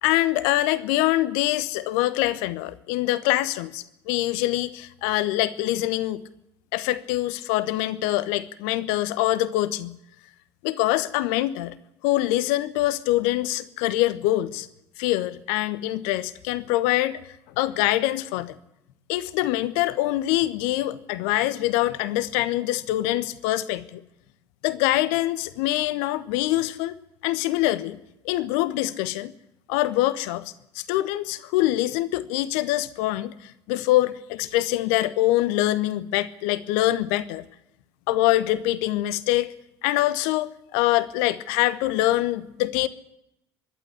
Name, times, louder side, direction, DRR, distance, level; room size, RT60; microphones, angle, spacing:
voice 1, 0.0-6.2 6.7-10.0 10.6-11.8 12.0-14.7 15.0-17.2 17.6-18.6 19.1-24.0 24.6-26.9 27.2-28.0 28.2-29.3 29.7-37.4 38.1-39.5 39.8-42.9, left 16 dB, 65° left, 15 dB, 1.1 m, -24 dB
24.5 x 11.5 x 9.8 m, 0.84 s
figure-of-eight pair, 60°, 14 cm